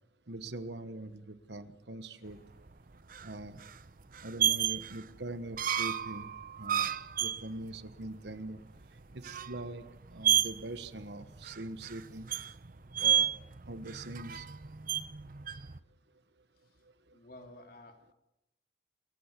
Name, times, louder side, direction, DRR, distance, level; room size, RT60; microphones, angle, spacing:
voice 1, 0.3-2.4 3.2-3.6 4.2-6.3 6.6-8.6 9.1-9.8 10.1-12.3 13.0-13.3 13.7-14.5, right 2 dB, 70° right, 12 dB, 1.3 m, -42 dB
sound 1, 2.4-15.8, right 10 dB, 50° right, 0.8 m, -33 dB
voice 2, 17.1-18.1, left 1 dB, 55° left, 4 dB, 3.3 m, -53 dB
27.0 x 15.0 x 8.3 m, 0.90 s
head